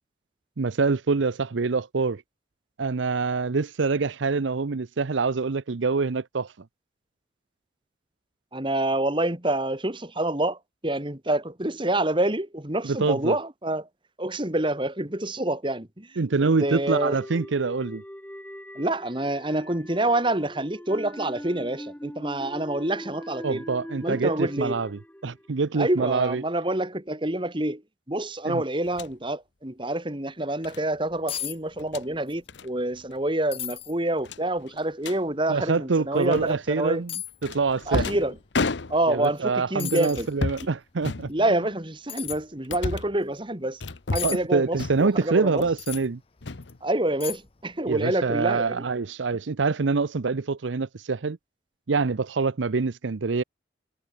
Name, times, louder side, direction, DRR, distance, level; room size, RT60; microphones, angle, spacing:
voice 1, 0.6-2.2 2.8-6.5 12.8-13.4 16.2-18.0 23.4-26.4 28.5-28.6 35.5-37.1 37.4-38.0 39.1-41.3 44.2-46.2 47.9-51.4 51.9-53.4, right 4 dB, 85° right, 0.7 m, -25 dB
voice 2, 8.5-13.9 14.2-16.1 16.6-17.2 18.8-23.6 24.0-24.8 25.8-27.8 28.1-37.0 37.9-38.4 38.9-40.3 41.3-43.8 44.1-45.7 46.8-48.9, right 1 dB, 25° right, 2.4 m, -27 dB
sound 1, 16.9-26.1, equal, 10° left, 1.3 m, -42 dB
sound 2, 28.9-29.2 30.6-30.8 31.7-32.1 32.5-32.7 33.0-33.2 33.5-33.6 34.2-35.2 36.3-36.8 37.4-39.3 40.1-40.7 41.0-41.7 42.2-43.2 43.8-44.5 44.8-45.2 45.6-46.1 46.4-47.3, left 3 dB, 75° left, 1.0 m, -32 dB
sound 3, 30.9-31.0 31.3-31.6 31.8-32.4 32.8-32.9 33.5-33.9 34.6-34.7 36.2-36.3 37.1-37.4 39.2-39.4 39.8-40.3 42.1-42.4 44.1-44.4 45.8-46.1 46.6-46.7 47.2-47.6 47.9-48.0, left 11 dB, 30° left, 1.0 m, -34 dB
head